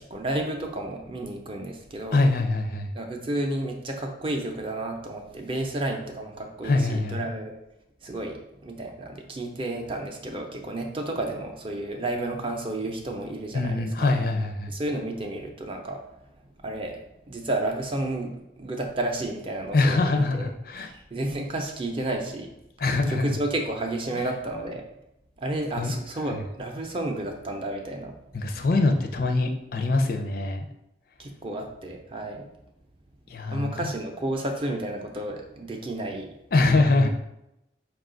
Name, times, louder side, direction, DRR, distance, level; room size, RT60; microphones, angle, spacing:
voice 1, 0.0-2.2 2.9-7.5 8.0-14.1 14.7-17.0 17.3-20.5 20.8-22.5 23.1-24.8 25.4-28.1 31.2-32.5 33.5-36.3, right 1 dB, 30° right, 2 dB, 0.5 m, -31 dB
voice 2, 2.1-2.9 6.6-7.3 13.5-14.7 19.7-20.9 22.8-23.3 25.8-25.9 28.3-30.6 33.3-33.9 36.5-37.1, left 2 dB, 50° left, 5 dB, 0.4 m, -23 dB
4.6 x 2.3 x 3.7 m, 0.86 s
head